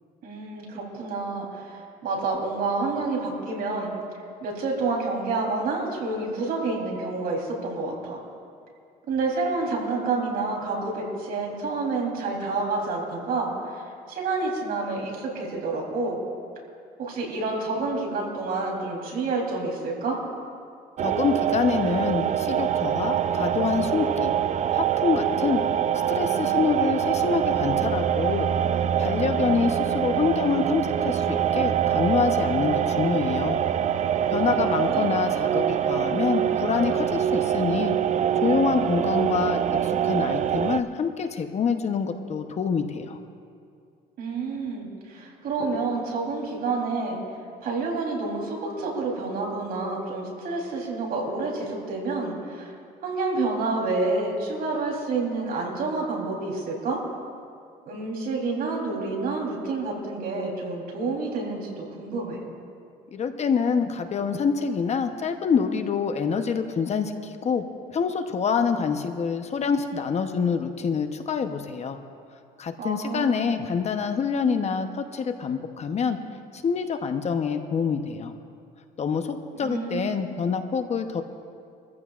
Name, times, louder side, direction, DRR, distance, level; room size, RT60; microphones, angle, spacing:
voice 1, 0.2-3.9 4.4-8.2 9.1-13.8 14.1-16.2 17.0-20.2 34.4-35.1 44.2-47.2 47.6-52.7 53.0-57.0 57.9-62.4 72.8-73.4 79.6-80.2, right 3 dB, 65° right, -1 dB, 3.6 m, -29 dB
voice 2, 21.0-24.3 24.7-25.6 26.1-33.6 34.3-38.0 38.4-43.2 63.1-67.6 67.9-72.0 72.6-76.2 76.5-78.3 79.0-81.2, left 6 dB, 40° left, 7 dB, 0.9 m, -26 dB
sound 1, 21.0-40.8, right 9 dB, 45° right, 0.5 m, -24 dB
24.5 x 14.5 x 2.5 m, 2.4 s
cardioid pair, 110°, 17 cm